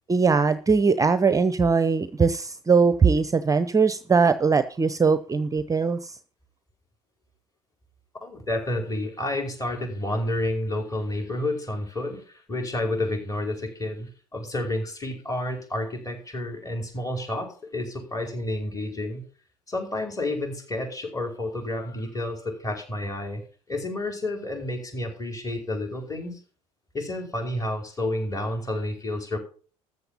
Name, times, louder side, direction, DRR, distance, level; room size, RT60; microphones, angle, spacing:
voice 1, 0.1-6.2, right 5 dB, 20° right, 13 dB, 0.7 m, -21 dB
voice 2, 8.2-19.2 19.7-23.4 23.7-26.4 26.9-29.4, left 1 dB, 20° left, 3 dB, 5.1 m, -30 dB
14.0 x 7.5 x 5.5 m, 0.40 s
figure-of-eight pair, 60°, 17 cm